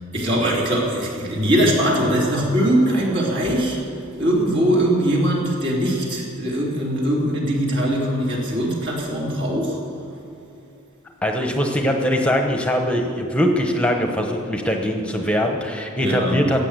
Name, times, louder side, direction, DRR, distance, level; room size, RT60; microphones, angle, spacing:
voice 1, 0.1-3.8 4.2-9.8 16.0-16.5, right 1 dB, 60° right, -3 dB, 3.5 m, -21 dB
voice 2, 11.2-16.6, equal, 5° left, 3 dB, 0.9 m, -21 dB
15.0 x 8.4 x 8.2 m, 2.8 s
head